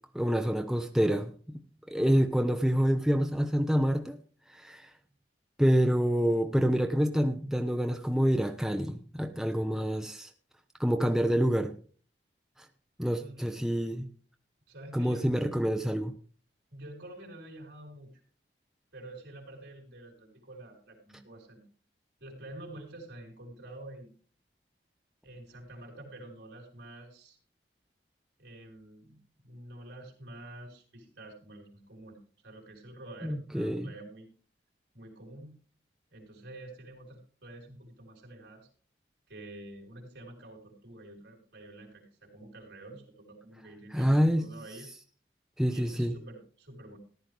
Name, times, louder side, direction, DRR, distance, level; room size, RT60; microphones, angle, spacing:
voice 1, 0.1-1.6 1.9-4.2 4.5-4.9 5.6-10.3 10.8-11.7 13.0-14.1 14.9-16.1 33.2-33.9 43.9-44.5 45.6-46.1, equal, ahead, 6 dB, 0.6 m, -27 dB
voice 2, 13.2-13.5 14.7-15.5 16.7-18.1 18.9-21.6 22.2-24.1 25.2-27.4 28.4-32.2 32.4-34.3 34.9-35.6 36.1-38.7 39.3-44.9 45.7-47.0, right 1 dB, 75° right, 0 dB, 3.8 m, -48 dB
14.5 x 11.0 x 3.3 m, 0.41 s
head